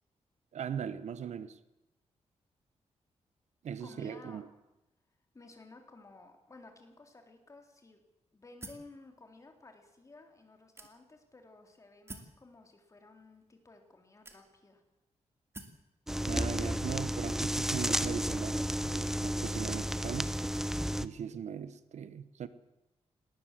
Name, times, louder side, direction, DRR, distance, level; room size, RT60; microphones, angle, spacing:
voice 1, 0.5-1.6 3.6-4.5 16.3-20.3 21.0-22.5, right 8 dB, 75° right, 13 dB, 1.2 m, -39 dB
voice 2, 3.8-4.5 5.3-8.0 8.3-14.8, left 3 dB, 25° left, 4 dB, 3.6 m, -55 dB
sound 1, 8.6-9.0 9.7-9.8 10.8-11.3 12.1-12.4 13.3-13.4 14.2-14.8 15.5-15.9, right 2 dB, 20° right, 2.4 m, -48 dB
sound 2, 16.1-21.1, equal, 5° right, 0.8 m, -32 dB
19.0 x 19.0 x 7.6 m, 0.96 s
wide cardioid pair, 135°, 12 cm